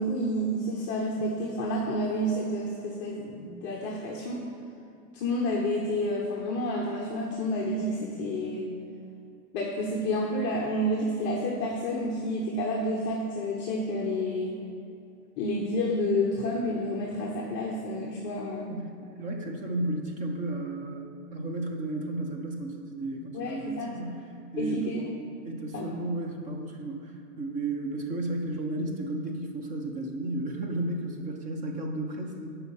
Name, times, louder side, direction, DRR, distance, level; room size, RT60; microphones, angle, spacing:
voice 1, 0.0-4.4 5.1-8.7 9.5-14.6 15.4-18.8 23.3-23.9 24.6-25.0 25.7-25.9, left 1 dB, 25° left, -3 dB, 0.9 m, -29 dB
voice 2, 19.2-21.1 21.3-24.3 24.5-24.9 25.4-32.5, right 1 dB, 15° right, 2 dB, 0.8 m, -33 dB
8.2 x 5.7 x 7.3 m, 2.6 s
hypercardioid pair, 140°, 48 cm